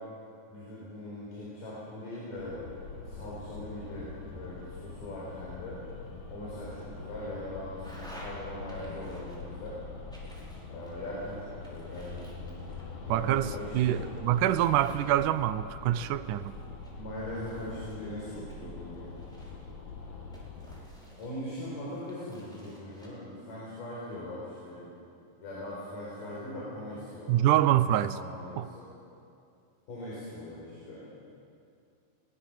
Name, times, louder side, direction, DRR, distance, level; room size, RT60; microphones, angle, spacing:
voice 1, 0.5-2.7 3.1-5.8 6.3-9.8 10.7-14.0 16.9-19.1 21.2-24.8 25.4-28.9 29.9-31.1, left 1 dB, 70° left, -7 dB, 6.2 m, -41 dB
sound 1, 2.4-20.8, left 3 dB, 55° left, 3.6 m, -44 dB
sound 2, 7.8-8.3 8.7-9.7 10.1-11.2 11.6-13.6 13.9-15.4 16.0-17.9 18.5-19.7 20.3-21.6 22.1-23.1, equal, ahead, 4.7 m, -53 dB
voice 2, 13.1-16.6 27.3-28.2 28.6-28.7, right 12 dB, 80° right, 14 dB, 2.0 m, -26 dB
22.5 x 19.5 x 7.4 m, 2.5 s
omnidirectional pair, 3.9 m